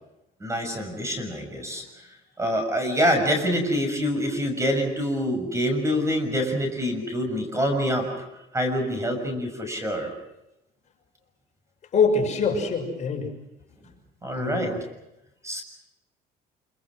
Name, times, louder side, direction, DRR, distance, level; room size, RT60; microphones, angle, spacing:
voice 1, 0.4-1.8 2.4-8.3 8.5-10.1 14.2-14.7 15.4-15.6, equal, 15° right, 6 dB, 6.5 m, -26 dB
voice 2, 11.9-13.3 14.3-14.7, left 4 dB, 45° left, 1 dB, 6.3 m, -24 dB
27.0 x 25.0 x 6.3 m, 0.91 s
cardioid pair, 110°, 17 cm